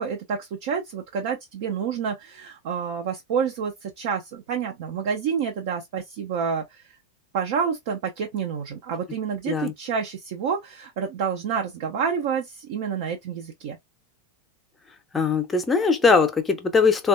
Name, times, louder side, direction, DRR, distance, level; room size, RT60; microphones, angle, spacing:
voice 1, 0.0-6.8 7.3-13.8, right 6 dB, 50° right, 0.5 m, -28 dB
voice 2, 15.1-17.1, left 5 dB, 15° left, 0.7 m, -20 dB
3.3 x 2.3 x 2.5 m
figure-of-eight pair, 90°, 0 cm